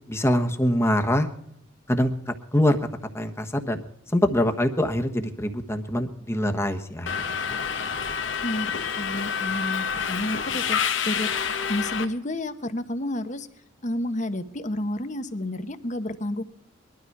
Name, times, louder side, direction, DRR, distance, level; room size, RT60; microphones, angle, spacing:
voice 1, 0.1-1.3 1.9-2.8 3.1-3.8 4.1-7.6, left 1 dB, 15° left, 6 dB, 1.2 m, -24 dB
Subway metro underground, 7.1-12.0, left 6 dB, 75° left, 1.3 m, -28 dB
voice 2, 8.4-11.3 11.7-13.5 13.8-16.4, left 1 dB, 40° left, 10 dB, 1.1 m, -30 dB
21.0 x 12.5 x 4.7 m, 0.74 s
head